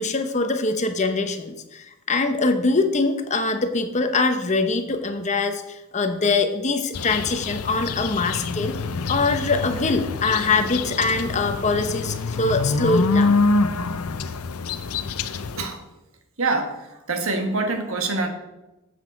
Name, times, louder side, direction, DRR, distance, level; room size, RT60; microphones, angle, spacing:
voice 1, 0.0-8.8 9.1-13.3, left 3 dB, 30° left, 7 dB, 0.9 m, -23 dB
sound 1, 6.9-15.6, left 3 dB, 85° left, 0.7 m, -25 dB
voice 2, 16.4-18.3, right 3 dB, 65° right, 6 dB, 1.6 m, -25 dB
12.0 x 7.8 x 5.2 m, 1.0 s
head